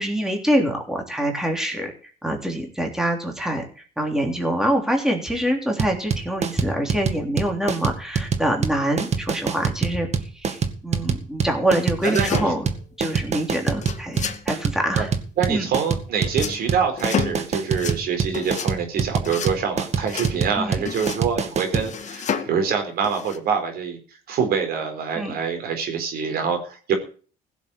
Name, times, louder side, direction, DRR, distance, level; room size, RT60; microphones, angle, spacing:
voice 1, 0.0-1.9 2.2-3.7 4.0-10.1 10.4-12.7 13.0-15.1 15.5-15.7 20.6-20.8 25.2-25.3, right 1 dB, 5° right, 2 dB, 3.3 m, -25 dB
sound 1, 5.8-21.9, right 6 dB, 40° right, 2.0 m, -25 dB
sound 2, 12.0-12.8 13.7-14.4 16.3-16.6 17.0-17.4 17.7-18.0 18.3-18.7 19.2-19.5 20.1-20.3 20.9-21.3 21.7-22.6 23.0-23.4, left 7 dB, 45° left, 2.0 m, -30 dB
voice 2, 12.0-12.5 15.0-15.1 15.4-24.0 24.3-26.9, right 6 dB, 65° right, 4 dB, 4.3 m, -25 dB
16.0 x 7.2 x 8.4 m, 0.40 s
cardioid pair, 110°, 17 cm